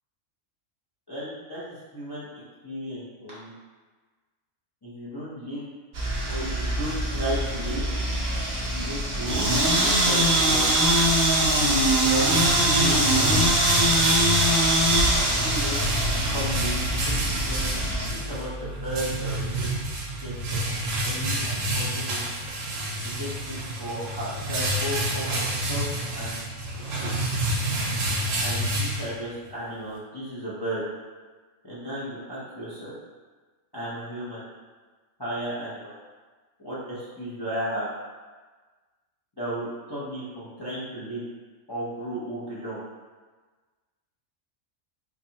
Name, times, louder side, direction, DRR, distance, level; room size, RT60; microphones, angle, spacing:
voice 1, 1.1-2.3 2.6-3.5 4.8-5.7 6.3-7.8 8.7-10.7 12.0-13.4 15.0-16.0 16.2-17.1 17.5-17.7 18.1-19.8 20.2-22.2 23.0-23.5 23.8-25.9 26.1-26.4 26.9-27.1 28.4-30.8 31.6-32.9 33.7-34.4 35.2-35.9 36.6-37.9 39.4-41.2 41.7-42.8, right 1 dB, 25° left, -10 dB, 0.6 m, -34 dB
sound 1, 5.9-18.1, right 1 dB, 45° right, 0.8 m, -23 dB
sound 2, 11.9-29.5, right 1 dB, 80° right, 1.0 m, -29 dB
sound 3, 17.1-21.7, left 1 dB, 80° left, 1.2 m, -39 dB
4.0 x 2.7 x 2.8 m, 1.4 s
omnidirectional pair, 1.3 m